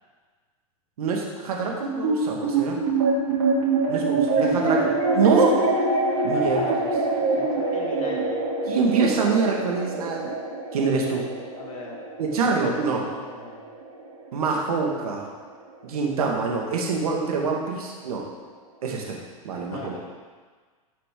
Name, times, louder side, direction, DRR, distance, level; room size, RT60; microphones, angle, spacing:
voice 1, 1.0-2.8 3.9-5.6 6.2-6.8 8.7-10.3 10.7-11.3 12.2-13.0 14.3-15.3 15.8-18.2 18.8-19.2 19.4-19.9, right 4 dB, 80° right, 0 dB, 1.9 m, -25 dB
sound 1, 2.0-14.6, right 3 dB, 50° right, 3.1 m, -25 dB
voice 2, 4.2-4.8 6.2-8.3 11.6-12.7 13.1-13.6 19.5-20.0, left 3 dB, 65° left, -3 dB, 2.7 m, -41 dB
12.5 x 6.7 x 3.8 m, 1.5 s
supercardioid pair, 150°, 19 cm